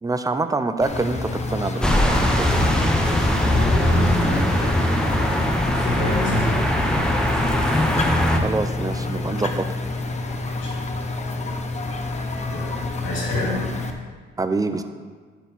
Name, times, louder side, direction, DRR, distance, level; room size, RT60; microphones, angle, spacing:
voice 1, 0.0-2.7 8.4-9.8 14.4-14.8, right 3 dB, 20° right, 9 dB, 0.6 m, -26 dB
sound 1, 0.8-13.9, left 3 dB, 35° left, 0.9 m, -28 dB
sound 2, 1.8-8.4, equal, 5° left, 1.0 m, -21 dB
voice 2, 3.5-5.4 5.7-7.1 10.4-10.8 12.5-13.6, left 2 dB, 75° left, -3 dB, 2.5 m, -29 dB
12.0 x 4.7 x 4.1 m, 1.5 s
cardioid pair, 90°, 20 cm